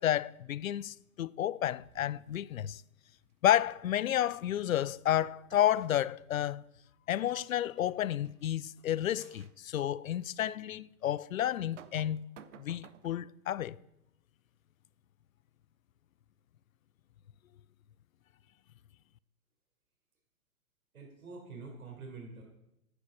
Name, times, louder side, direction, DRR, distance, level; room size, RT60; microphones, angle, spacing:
voice 1, 0.0-2.8 3.4-6.6 7.1-12.2 12.6-13.8, left 12 dB, 70° left, 0.5 m, -31 dB
sound 1, 1.8-2.3 5.2-5.9 7.8-7.9 8.2-8.4 9.1-9.5 10.1-10.2 11.5-13.3, right 9 dB, 55° right, 1.0 m, -55 dB
voice 2, 20.9-22.4, right 4 dB, 75° right, 4.4 m, -46 dB
11.0 x 9.8 x 6.0 m
figure-of-eight pair, 105°, 43 cm